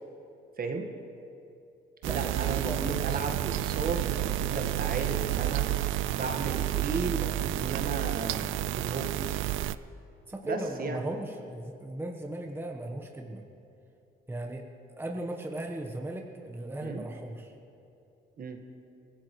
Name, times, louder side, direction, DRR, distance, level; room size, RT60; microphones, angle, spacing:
voice 1, 0.6-0.9 2.1-5.7 6.1-8.5 8.7-9.1 10.4-11.0 16.8-17.0 18.4-18.6, right 3 dB, 50° right, 4 dB, 1.7 m, -34 dB
voice 2, 2.0-3.0 10.3-13.4 14.3-14.6 14.9-17.5, right 1 dB, 10° right, 2 dB, 1.3 m, -37 dB
sound 1, 2.0-9.8, right 14 dB, 80° right, 0.4 m, -30 dB
24.0 x 16.0 x 3.2 m, 2.7 s
cardioid pair, 90°, 20 cm